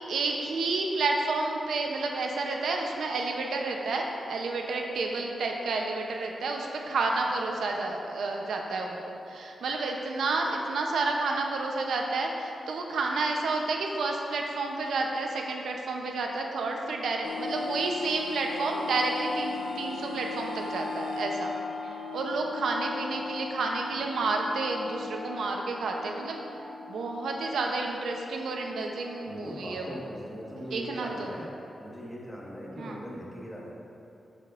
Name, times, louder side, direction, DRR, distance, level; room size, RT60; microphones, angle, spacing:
voice 1, 0.0-21.5 21.8-26.4 26.9-30.0 30.5-31.3 32.8-33.0, right 3 dB, 85° right, 1 dB, 0.7 m, -30 dB
sound 1, 17.2-30.3, left 3 dB, 70° left, 0.6 m, -38 dB
voice 2, 29.3-31.5 31.8-33.8, equal, 5° left, -5 dB, 1.4 m, -40 dB
13.0 x 5.2 x 2.5 m, 2.9 s
wide cardioid pair, 120°, 0 cm